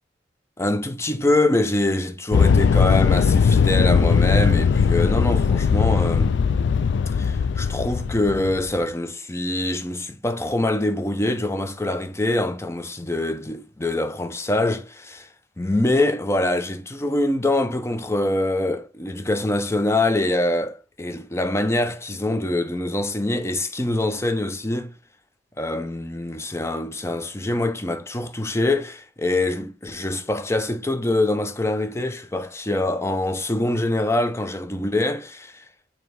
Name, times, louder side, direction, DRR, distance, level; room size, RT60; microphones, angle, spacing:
voice 1, 0.6-6.4 7.2-15.3 15.6-24.9 25.6-35.5, left 2 dB, 15° left, 0.6 m, -24 dB
sound 1, 2.3-8.8, left 6 dB, 85° left, 0.3 m, -19 dB
7.2 x 2.9 x 4.6 m
head